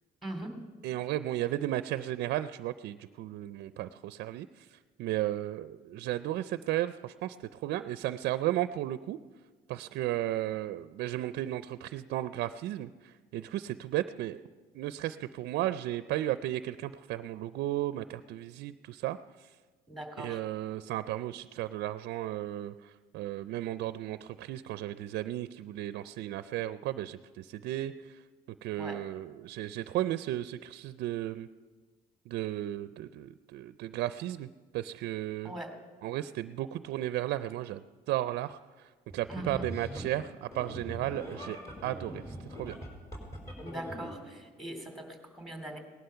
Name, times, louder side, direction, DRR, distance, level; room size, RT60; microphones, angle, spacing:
voice 1, 0.2-0.6 19.9-20.4 28.8-29.0 35.4-35.7 39.3-39.6 43.6-45.8, right 1 dB, ahead, 4 dB, 2.5 m, -41 dB
voice 2, 0.8-9.2 9.7-14.4 14.7-19.5 20.2-28.2 28.6-31.5 32.3-35.6 36.0-41.6 41.8-42.8, right 14 dB, 75° right, 13 dB, 0.4 m, -34 dB
sound 1, 39.1-40.1 40.5-44.2, equal, 20° left, 4.2 m, -42 dB
18.0 x 11.5 x 5.7 m, 1.4 s
cardioid pair, 110°, 17 cm